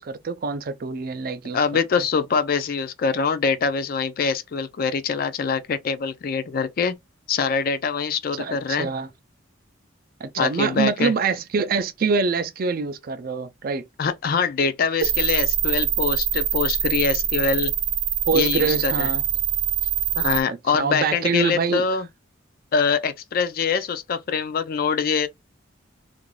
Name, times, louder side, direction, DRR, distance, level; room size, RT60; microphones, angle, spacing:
voice 1, 0.0-1.6 8.4-9.1 10.2-13.8 18.3-19.2 20.5-21.8, right 5 dB, 45° right, 0.4 m, -25 dB
voice 2, 1.5-7.0 7.3-8.9 10.4-11.1 14.0-17.7 18.3-19.1 20.2-22.1 22.7-25.3, left 5 dB, 45° left, 0.3 m, -24 dB
sound 1, 15.0-20.4, right 11 dB, 65° right, 0.8 m, -24 dB
2.5 x 2.2 x 3.1 m
head